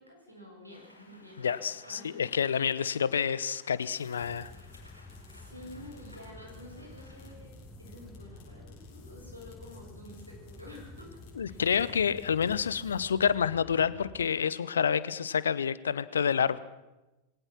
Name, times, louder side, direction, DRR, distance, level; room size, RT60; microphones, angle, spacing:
voice 1, 0.0-2.6 5.3-11.6, left 1 dB, 90° right, -1 dB, 7.7 m, -50 dB
Rain, 0.7-7.3, left 1 dB, 85° left, 4.7 m, -58 dB
voice 2, 1.4-4.5 11.4-16.6, left 7 dB, 70° left, 18 dB, 0.9 m, -28 dB
sound 1, 3.6-13.5, left 7 dB, 45° left, 7.3 m, -63 dB
sound 2, 4.2-14.3, left 2 dB, 10° left, 1.7 m, -49 dB
22.5 x 17.5 x 7.6 m, 1.0 s
figure-of-eight pair, 90°, 0 cm